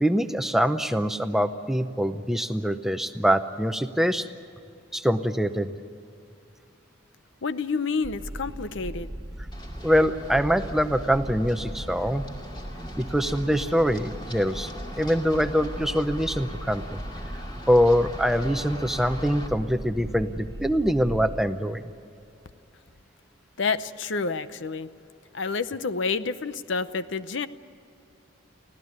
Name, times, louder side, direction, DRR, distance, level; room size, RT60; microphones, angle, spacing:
voice 1, 0.0-4.3 4.9-5.7 9.8-12.3 13.0-14.7 15.0-17.0 17.7-21.8, equal, ahead, 9 dB, 0.7 m, -24 dB
voice 2, 7.4-9.1 23.6-24.9 25.3-27.5, left 4 dB, 70° left, 13 dB, 0.7 m, -29 dB
sound 1, 8.0-21.5, equal, 20° right, 1.2 m, -38 dB
Run, 9.5-19.5, left 1 dB, 20° left, 2.5 m, -43 dB
24.5 x 16.5 x 9.6 m, 2.5 s
head